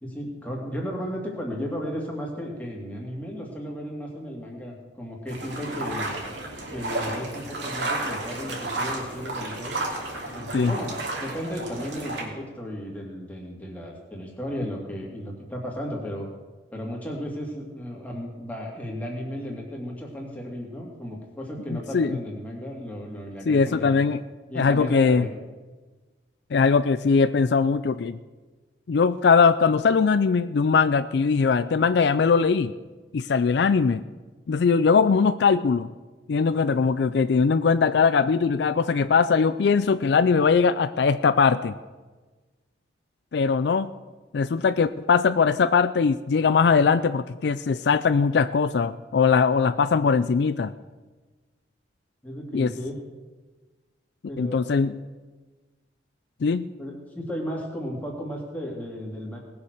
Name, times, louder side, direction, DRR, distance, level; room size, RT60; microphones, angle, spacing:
voice 1, 0.0-6.2 6.7-9.8 10.3-10.9 11.2-16.3 16.7-24.0 24.5-25.3 52.2-53.0 54.3-54.6 56.8-59.4, equal, 10° left, -2 dB, 2.6 m, -34 dB
sound 1, 5.3-12.2, right 2 dB, 70° right, 2.9 m, -32 dB
voice 2, 23.5-24.2 24.5-25.3 26.5-28.2 28.9-32.7 33.1-34.0 34.5-35.9 36.3-41.8 43.3-43.9 44.3-50.7 52.5-52.7 54.4-54.9 56.4-56.7, left 5 dB, 65° left, 13 dB, 0.4 m, -21 dB
19.0 x 7.1 x 6.5 m, 1.3 s
head